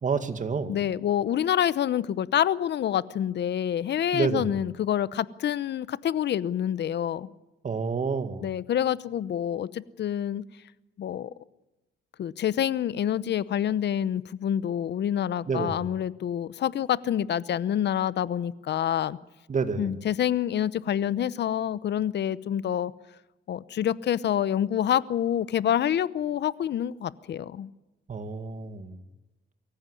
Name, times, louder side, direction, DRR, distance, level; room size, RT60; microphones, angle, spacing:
voice 1, 0.0-0.8 4.1-4.5 7.6-8.5 15.5-15.8 19.5-19.9 28.1-29.0, right 5 dB, 40° right, 9 dB, 2.2 m, -29 dB
voice 2, 0.7-7.3 8.4-10.4 11.0-11.3 12.2-19.2 19.8-22.9 23.5-27.7, left 10 dB, 60° left, 18 dB, 0.9 m, -27 dB
23.5 x 15.0 x 9.8 m, 1.0 s
cardioid pair, 90°, 20 cm